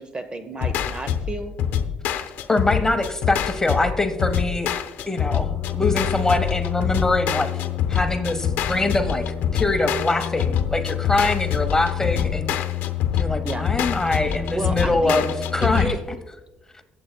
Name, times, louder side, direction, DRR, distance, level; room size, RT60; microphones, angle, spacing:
voice 1, 0.0-1.6 13.4-13.7 14.3-15.3 15.6-16.0, right 2 dB, 25° right, 9 dB, 0.9 m, -31 dB
sound 1, 0.6-15.9, left 9 dB, 85° left, 0.7 m, -25 dB
voice 2, 2.1-4.7 5.1-7.5 7.9-9.2 9.5-12.5 13.1-15.9, left 2 dB, 15° left, 8 dB, 1.0 m, -23 dB
23.0 x 7.8 x 2.3 m, 1.1 s
cardioid pair, 85°, 3 cm